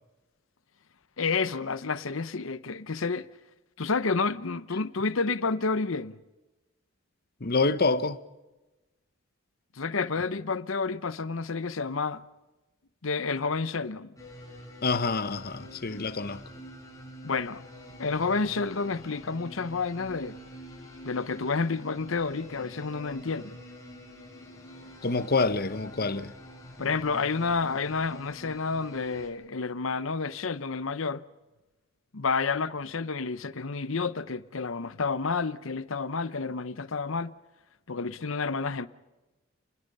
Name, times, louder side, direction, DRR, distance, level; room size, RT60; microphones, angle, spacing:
voice 1, 1.2-3.3 3.8-6.2 9.8-12.2 13.0-14.1 17.2-17.6 18.0-20.4 21.0-23.6 26.8-31.2 32.1-37.3 37.9-38.9, left 4 dB, 75° left, 0.9 m, -30 dB
voice 2, 7.4-8.2 14.8-16.4 25.0-26.3, left 3 dB, 45° left, 1.0 m, -27 dB
sound 1, 14.2-29.3, equal, 15° left, 6.0 m, -47 dB
29.0 x 20.5 x 5.5 m
head